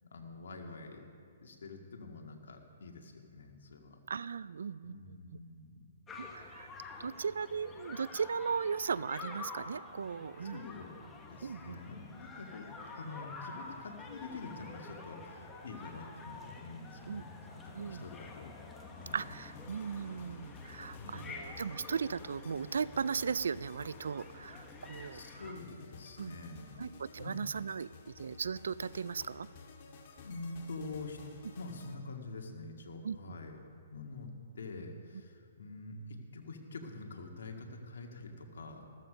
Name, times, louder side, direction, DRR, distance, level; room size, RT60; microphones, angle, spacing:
voice 1, 0.0-4.0 4.8-5.9 10.4-10.9 11.3-12.7 12.9-19.3 21.0-21.4 25.1-26.7 27.2-27.4 30.2-31.2 31.6-33.6 33.9-38.8, left 3 dB, 75° left, 3 dB, 2.0 m, -46 dB
voice 2, 4.1-5.2 6.2-6.7 7.0-10.6 11.4-11.8 17.1-17.2 17.7-18.0 19.1-25.2 25.5-25.6 26.2-26.3 26.8-27.9 28.2-29.5 33.0-33.2, right 6 dB, 80° right, 19 dB, 0.4 m, -37 dB
sound 1, 6.1-25.5, left 3 dB, 15° left, 1.2 m, -49 dB
sound 2, 19.1-31.9, left 3 dB, 45° left, 1.8 m, -54 dB
14.5 x 13.5 x 5.2 m, 2.3 s
hypercardioid pair, 150°, 0 cm